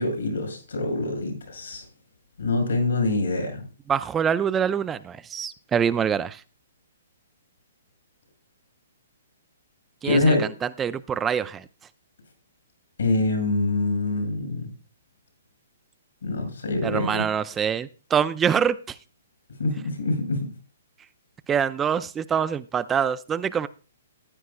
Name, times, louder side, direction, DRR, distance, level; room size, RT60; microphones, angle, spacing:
voice 1, 0.0-1.8 2.4-3.6 10.0-10.4 13.0-14.7 16.2-17.2 19.6-20.5, left 2 dB, 85° left, 4 dB, 6.2 m, -25 dB
voice 2, 3.9-6.4 10.0-11.6 16.8-19.0 21.5-23.7, right 7 dB, 15° right, 14 dB, 0.4 m, -25 dB
14.5 x 10.0 x 2.3 m, 0.35 s
hypercardioid pair, 140°, 0 cm